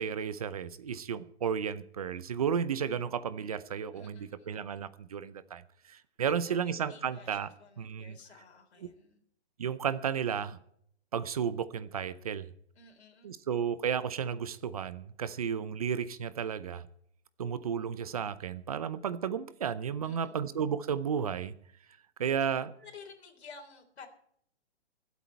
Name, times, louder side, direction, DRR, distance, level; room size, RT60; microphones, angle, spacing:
voice 1, 0.0-5.6 5.9-8.2 8.8-8.9 9.6-10.6 11.1-12.5 13.2-16.9 17.4-21.5 22.2-22.7, right 7 dB, 35° right, 0.6 m, -33 dB
voice 2, 3.9-4.5 6.2-9.2 12.8-13.4 20.0-20.5 22.3-22.4 22.8-24.1, left 4 dB, 70° left, 3.6 m, -53 dB
24.5 x 8.3 x 4.5 m
hypercardioid pair, 170°, 33 cm